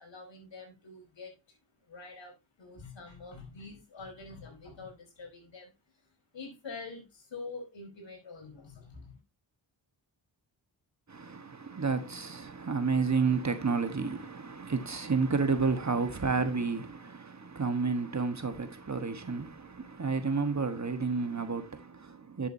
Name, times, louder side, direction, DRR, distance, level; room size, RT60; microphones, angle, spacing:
voice 1, 0.0-1.6 1.9-5.7 6.3-9.2, left 3 dB, 70° left, 4.6 m, -46 dB
voice 2, 11.1-22.5, right 4 dB, 35° right, 1.4 m, -31 dB
10.5 x 7.6 x 2.7 m
wide cardioid pair, 85°, 46 cm